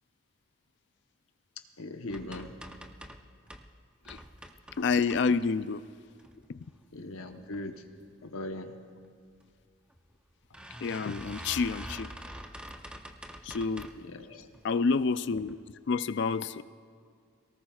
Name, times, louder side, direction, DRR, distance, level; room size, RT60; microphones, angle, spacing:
voice 1, 1.8-2.5 6.9-7.8 8.2-8.7 13.9-14.5, left 1 dB, 85° left, 5 dB, 1.0 m, -39 dB
sound 1, 2.1-3.7 4.0-5.7 6.1-6.8 7.2-7.6 7.9-8.0 8.3-8.4 9.4-9.5 9.9-10.0 10.5-14.1 14.5-15.0 15.4-15.6 15.9-16.0, equal, 5° right, 0.6 m, -45 dB
voice 2, 4.8-5.8 6.5-6.6 10.8-12.1 13.4-13.9 14.6-15.6 15.9-16.6, left 4 dB, 55° left, 14 dB, 0.4 m, -28 dB
23.0 x 18.0 x 2.4 m, 2.2 s
head